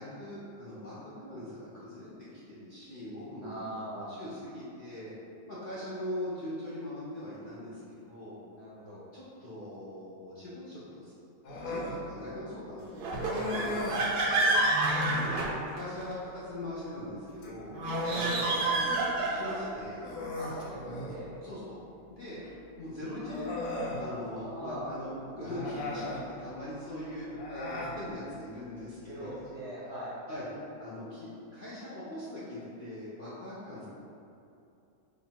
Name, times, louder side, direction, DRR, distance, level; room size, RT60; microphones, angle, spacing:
voice 1, 0.0-5.1 5.5-8.4 9.1-11.1 11.5-13.8 14.4-14.6 15.0-18.6 19.0-20.1 21.4-21.8 22.1-22.4 22.8-23.6 24.0-29.4 30.3-30.5 30.8-33.8, left 1 dB, 50° left, -11 dB, 0.6 m, -41 dB
voice 2, 3.4-4.1 8.6-9.0 13.5-14.5 18.1-18.8 20.4-21.3 24.4-24.9 29.1-30.1, right 1 dB, 60° right, -7 dB, 0.7 m, -42 dB
Human voice, 11.4-12.0 13.2-14.1 14.8-15.3 17.3-19.0 19.4-19.5 20.0-21.2 22.4-22.5 23.2-24.0 25.4-26.2 27.3-27.9, left 2 dB, 75° left, 1.2 m, -37 dB
sound 1, 13.0-16.1 17.7-19.7, right 2 dB, 85° right, 1.1 m, -29 dB
3.0 x 2.6 x 4.3 m, 2.7 s
omnidirectional pair, 1.7 m